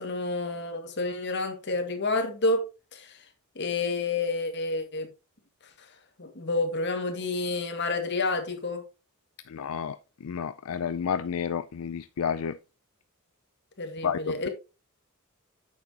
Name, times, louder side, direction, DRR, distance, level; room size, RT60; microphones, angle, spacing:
voice 1, 0.0-2.6 2.9-3.2 3.6-5.1 6.2-8.8 13.8-14.5, left 3 dB, 55° left, 1.9 m, -29 dB
voice 2, 9.5-12.6 14.0-14.5, left 7 dB, 70° left, 0.4 m, -31 dB
9.3 x 7.1 x 2.8 m
head